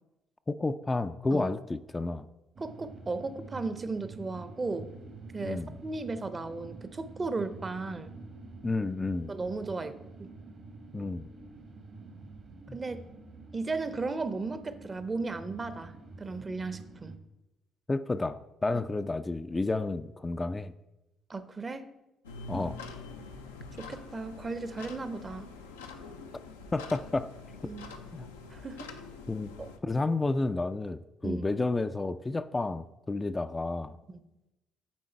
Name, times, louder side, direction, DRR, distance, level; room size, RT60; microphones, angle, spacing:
voice 1, 0.5-2.3 5.4-5.8 8.6-9.3 10.9-11.3 12.7-12.8 17.9-20.7 22.5-22.8 26.7-27.3 28.1-28.3 29.3-29.5 29.8-34.0, left 2 dB, 25° left, 10 dB, 0.3 m, -31 dB
voice 2, 2.6-4.9 5.3-8.1 9.3-10.3 12.7-13.1 13.5-15.9 16.2-17.2 21.3-21.9 22.5-22.7 23.8-25.5 27.6-27.8 28.5-28.9 29.6-29.7 31.2-31.5 34.1-34.2, right 3 dB, 30° right, 12 dB, 0.6 m, -35 dB
sound 1, 2.6-17.2, right 3 dB, 50° right, 1.0 m, -48 dB
sound 2, 22.2-29.8, left 4 dB, 90° left, 0.5 m, -45 dB
8.6 x 3.8 x 4.5 m, 0.97 s
hypercardioid pair, 50°, 0 cm